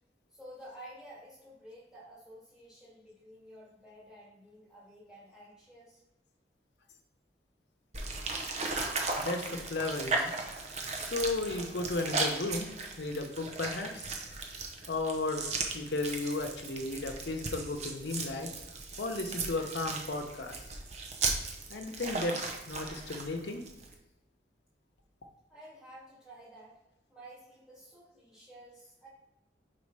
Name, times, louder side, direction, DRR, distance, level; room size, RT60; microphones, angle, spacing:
voice 1, 0.3-6.0 25.5-26.8 27.1-29.1, right 1 dB, 5° right, -7 dB, 2.0 m, -52 dB
sound 1, 7.9-23.9, right 3 dB, 40° right, 0.7 m, -37 dB
voice 2, 9.2-10.3 10.9-12.7 13.0-14.2 14.9-18.5 19.0-20.7 21.7-23.6, left 2 dB, 75° left, 4 dB, 0.8 m, -34 dB
4.7 x 4.2 x 4.7 m, 1.0 s
head